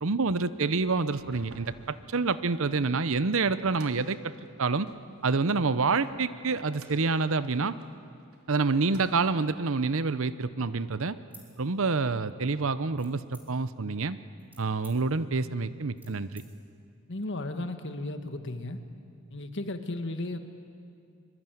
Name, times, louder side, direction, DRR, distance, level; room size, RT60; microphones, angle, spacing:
voice 1, 0.0-4.3 4.6-4.9 5.2-7.7 8.5-11.2 11.6-14.2 14.6-16.4, right 4 dB, 60° right, 14 dB, 0.8 m, -27 dB
sound 1, 1.0-5.1 5.7-8.4 8.8-9.5, right 2 dB, 80° right, 3.1 m, -56 dB
sound 2, 11.2-12.3 13.0-13.8 14.2-16.5, right 1 dB, 10° right, 3.7 m, -55 dB
voice 2, 17.1-18.8 19.3-20.4, left 2 dB, 55° left, 7 dB, 1.6 m, -34 dB
24.0 x 23.5 x 9.2 m, 2.4 s
head